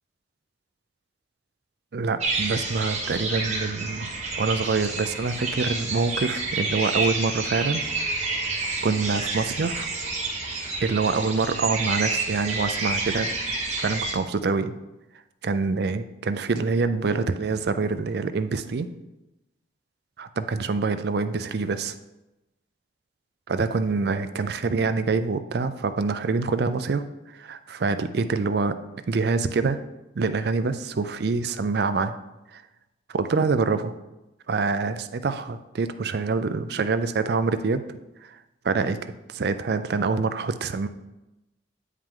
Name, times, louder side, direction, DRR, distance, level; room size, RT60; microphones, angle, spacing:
voice 1, 1.9-4.1 4.4-7.8 8.8-9.9 10.8-13.3 13.8-14.8 15.4-18.9 20.2-21.9 23.5-27.0 27.3-28.7 29.1-29.8 30.2-32.1 32.5-32.6 33.1-33.9 34.5-37.8 38.3-38.4 38.6-40.9, right 4 dB, 55° right, 11 dB, 0.4 m, -25 dB
sound 1, 2.2-14.1, right 3 dB, 35° right, 1.2 m, -29 dB
9.0 x 4.9 x 3.7 m, 0.97 s
head